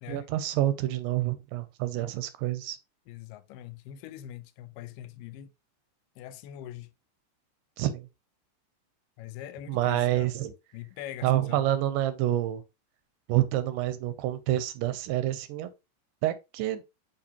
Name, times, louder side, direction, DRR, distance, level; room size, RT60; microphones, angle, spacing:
voice 1, 0.1-2.8 7.8-8.1 9.7-10.5 11.2-12.6 13.3-15.7 16.2-16.8, right 14 dB, 85° right, 2.2 m, -28 dB
voice 2, 3.1-5.5 6.2-6.9 9.2-10.3 10.7-11.7, left 12 dB, 90° left, 2.2 m, -42 dB
6.7 x 2.8 x 2.8 m
omnidirectional pair, 3.7 m